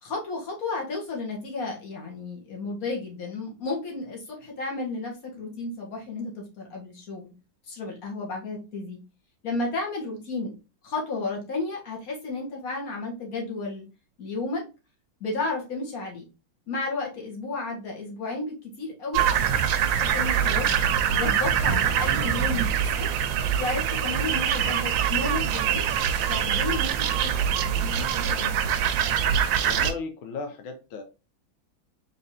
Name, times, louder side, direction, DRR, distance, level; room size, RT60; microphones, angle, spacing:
voice 1, 0.0-7.3 7.6-9.0 9.4-10.5 10.8-13.9 14.2-14.6 15.2-16.2 16.7-19.2 19.8-20.7 21.1-22.7 22.9-23.1 23.6-25.9 26.3-28.8, left 3 dB, 45° left, 1.8 m, -33 dB
sound 1, 19.1-29.9, right 8 dB, 75° right, 1.2 m, -24 dB
voice 2, 29.6-31.0, left 4 dB, 85° left, 1.5 m, -35 dB
3.9 x 3.8 x 2.7 m
omnidirectional pair, 2.2 m